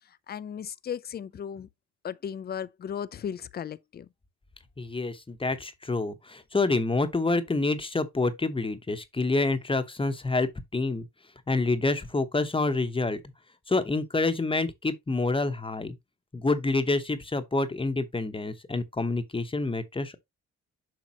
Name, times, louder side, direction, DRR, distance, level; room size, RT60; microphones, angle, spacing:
voice 1, 0.3-1.7 2.0-4.1, left 8 dB, 35° left, 0.5 m, -36 dB
voice 2, 4.8-11.1 11.5-13.2 13.7-15.9 16.3-20.2, left 3 dB, 15° left, 0.9 m, -27 dB
7.4 x 5.1 x 2.9 m
cardioid pair, 90°, 30 cm